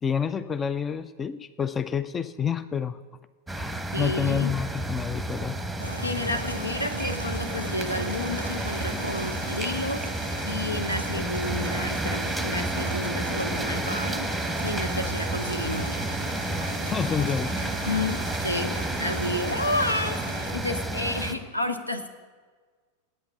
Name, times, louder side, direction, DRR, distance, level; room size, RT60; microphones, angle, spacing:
voice 1, 0.0-3.0 3.5-5.6 16.8-17.5, left 7 dB, 20° left, 14 dB, 0.3 m, -28 dB
sound 1, 3.5-21.3, right 2 dB, ahead, 0.9 m, -30 dB
voice 2, 3.9-4.5 6.0-16.1 17.9-22.1, left 1 dB, 85° left, 8 dB, 0.8 m, -31 dB
sound 2, 5.8-20.5, right 1 dB, 85° right, 0.4 m, -39 dB
8.8 x 8.7 x 6.9 m, 1.5 s
figure-of-eight pair, 90°, 0 cm